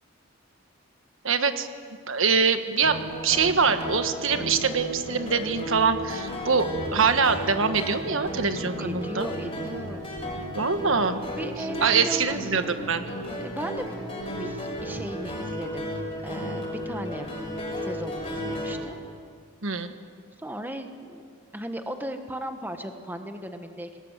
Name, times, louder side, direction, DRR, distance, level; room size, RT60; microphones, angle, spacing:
voice 1, 1.2-1.7 2.1-9.3 10.5-11.2 11.8-13.0 19.6-19.9, right 5 dB, 65° right, 8 dB, 1.4 m, -24 dB
sound 1, 2.8-18.7, equal, 25° left, 6.5 m, -34 dB
voice 2, 8.8-10.0 11.2-12.4 13.1-13.8 14.4-15.9 16.2-17.3 17.8-19.0 20.4-21.2 21.5-24.0, right 1 dB, 10° right, 6 dB, 1.3 m, -36 dB
27.0 x 20.0 x 8.1 m, 2.1 s
head